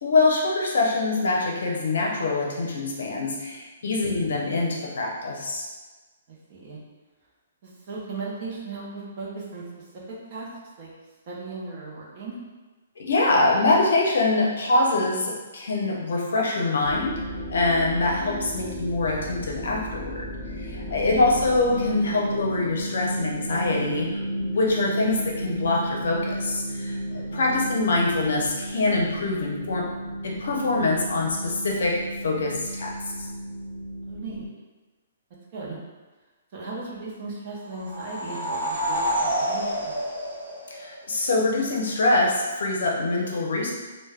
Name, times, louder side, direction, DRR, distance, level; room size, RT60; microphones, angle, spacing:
voice 1, 0.0-5.7 13.0-17.2 17.5-20.3 20.5-29.9 30.2-32.9 40.7-43.7, left 2 dB, 65° left, -1 dB, 0.6 m, -24 dB
voice 2, 6.3-6.8 7.6-10.5 10.8-10.9 11.3-12.4 20.8-21.3 27.1-27.6 34.1-34.5 35.5-35.8 36.5-39.9, right 3 dB, 35° right, -4 dB, 0.6 m, -37 dB
sound 1, 16.8-34.5, equal, 15° left, 0.6 m, -33 dB
sound 2, 37.7-41.2, equal, 65° right, 0.9 m, -28 dB
2.2 x 2.1 x 3.3 m, 1.2 s
hypercardioid pair, 175°, 0 cm